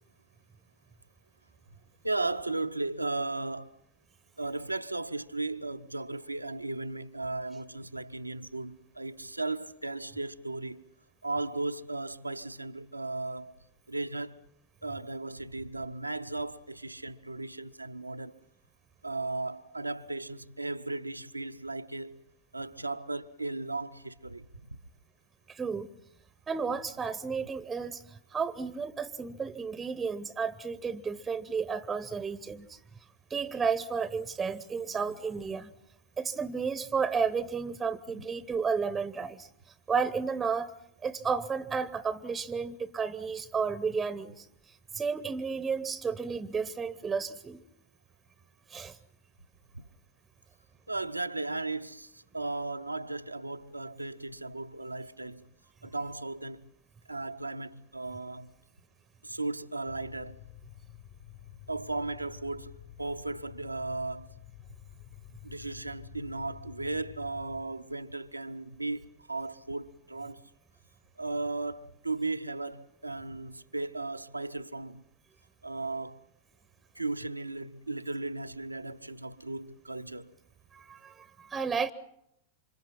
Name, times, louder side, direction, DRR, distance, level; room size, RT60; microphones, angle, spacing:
voice 1, 2.0-3.7 4.4-10.8 11.2-13.5 13.9-14.4 14.8-18.4 19.0-22.2 22.5-24.4 49.7-49.8 50.9-55.5 55.8-56.7 57.1-58.5 59.2-60.4 61.7-64.3 65.4-70.5 71.2-75.0 75.6-76.2 76.9-80.3, right 2 dB, 85° right, 0.8 m, -36 dB
voice 2, 25.5-25.9 26.5-32.8 33.3-35.7 36.2-39.5 39.9-40.7 41.0-44.5 44.9-47.6 48.7-49.0 80.7-81.9, right 5 dB, 15° right, 0.9 m, -32 dB
sound 1, 59.9-67.6, left 13 dB, 50° left, 6.0 m, -50 dB
28.0 x 26.0 x 5.8 m
figure-of-eight pair, 90°, 0 cm